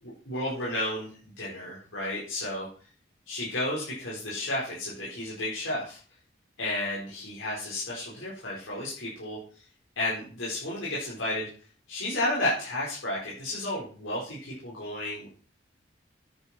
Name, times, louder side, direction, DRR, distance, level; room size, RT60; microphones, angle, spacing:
voice 1, 0.0-2.7 3.3-6.0 6.6-9.4 10.0-11.5 11.9-15.3, left 1 dB, 85° left, -8 dB, 4.7 m, -32 dB
10.0 x 9.3 x 4.5 m, 0.41 s
head